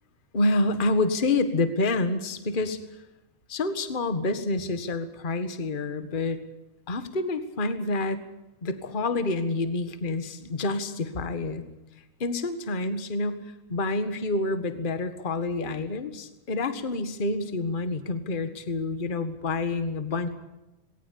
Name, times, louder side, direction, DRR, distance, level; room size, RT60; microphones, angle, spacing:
voice 1, 0.3-2.8 3.5-6.4 6.9-8.2 8.6-11.6 12.2-13.4 13.7-20.3, left 2 dB, 35° left, 10 dB, 0.8 m, -28 dB
20.5 x 18.0 x 8.6 m, 0.96 s
omnidirectional pair, 3.8 m